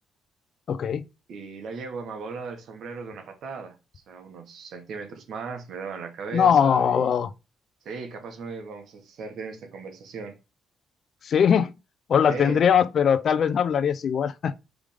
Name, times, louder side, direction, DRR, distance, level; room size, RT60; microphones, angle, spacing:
voice 1, 0.7-1.0 6.3-7.3 11.2-11.7 12.1-14.5, left 7 dB, 55° left, 0.7 m, -21 dB
voice 2, 1.3-7.2 7.8-10.4 12.3-12.6, right 4 dB, 70° right, 1.6 m, -37 dB
5.0 x 3.6 x 5.2 m
cardioid pair, 90°, 0 cm